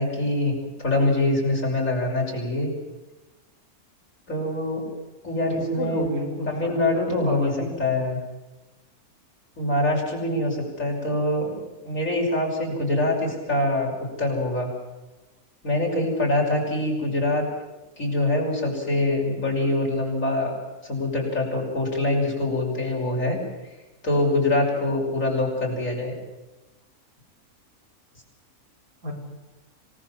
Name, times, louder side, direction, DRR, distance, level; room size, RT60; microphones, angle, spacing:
voice 1, 0.0-2.7 4.3-4.8 5.2-6.1 6.5-7.5 7.8-8.2 9.6-14.7 15.6-17.4 18.0-20.5 20.8-23.4 24.0-26.1, left 1 dB, 60° left, -1 dB, 6.2 m, -24 dB
voice 2, 5.5-8.0 29.0-29.1, equal, 70° right, -1 dB, 5.7 m, -31 dB
26.0 x 19.0 x 7.3 m, 1.1 s
omnidirectional pair, 1.6 m